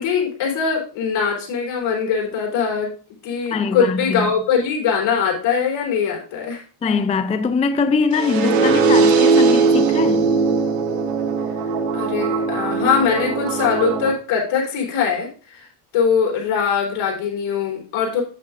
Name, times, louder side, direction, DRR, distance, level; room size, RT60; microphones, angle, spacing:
voice 1, 0.0-2.9 3.2-6.6 11.9-15.7 15.9-18.2, left 6 dB, 70° left, 4.0 m, -21 dB
voice 2, 3.5-4.3 6.8-10.3, left 4 dB, 15° left, 0.4 m, -22 dB
sound 1, 8.1-14.1, right 4 dB, 90° right, 1.8 m, -19 dB
9.0 x 8.8 x 2.5 m
cardioid pair, 110°, 49 cm